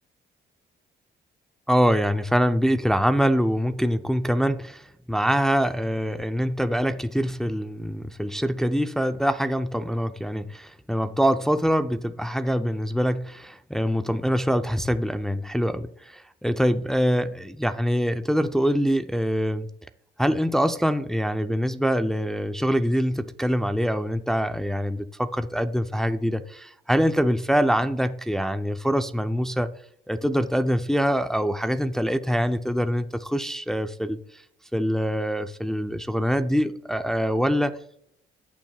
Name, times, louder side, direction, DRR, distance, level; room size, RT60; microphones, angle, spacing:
voice 1, 1.7-19.7 20.2-29.7 30.1-34.4 34.7-37.8, equal, ahead, 0.5 m, -24 dB
17.0 x 6.0 x 2.3 m
cardioid pair, 90°, 20 cm